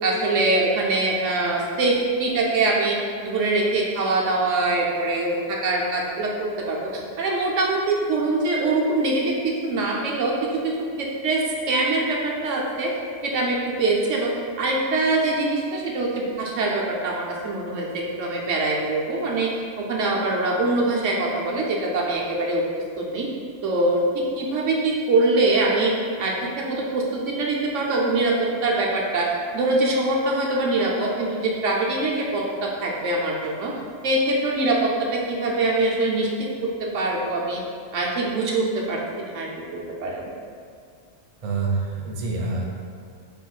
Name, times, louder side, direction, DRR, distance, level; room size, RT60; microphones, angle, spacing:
voice 1, 0.0-3.0 3.2-6.3 6.7-9.2 9.6-10.3 11.0-11.4 11.7-12.2 12.4-12.9 13.2-14.3 14.6-19.5 19.9-22.6 23.0-23.3 23.6-24.0 24.4-25.9 26.2-28.3 28.6-29.3 29.5-32.4 32.8-33.7 34.0-34.8 35.1-36.3 36.9-37.6 37.9-39.0 39.3-40.2, right 2 dB, 75° right, -2 dB, 1.0 m, -23 dB
voice 2, 41.4-42.6, right 3 dB, 50° right, -2 dB, 0.4 m, -26 dB
6.2 x 3.0 x 2.4 m, 2.2 s
omnidirectional pair, 1.3 m